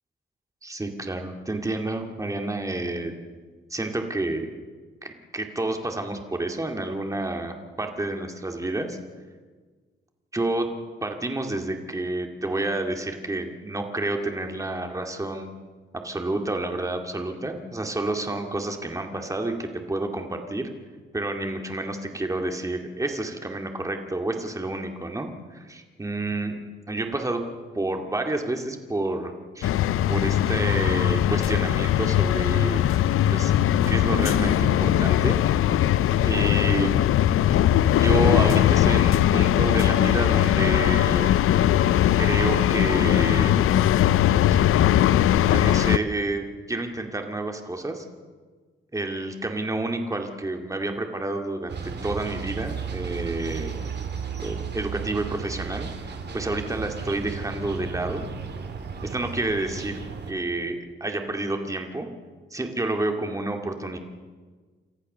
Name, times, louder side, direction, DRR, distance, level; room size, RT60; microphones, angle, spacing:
voice 1, 0.6-3.2 3.7-4.5 5.0-9.0 10.3-10.7 11.0-15.5 15.9-20.7 21.1-26.6 26.9-27.4 27.7-29.7 30.1-32.8 33.3-33.5 33.9-35.4 36.2-36.9 37.9-41.4 42.2-43.5 45.5-48.0 48.9-53.9 54.4-58.3 59.0-60.0 60.3-62.1 62.5-64.0, right 2 dB, 15° right, 4 dB, 2.2 m, -29 dB
sound 1, 29.6-46.0, left 11 dB, 90° left, 0.6 m, -20 dB
sound 2, 51.7-60.3, right 6 dB, 55° right, 2.4 m, -34 dB
28.0 x 14.0 x 6.8 m, 1.4 s
cardioid pair, 120°, 21 cm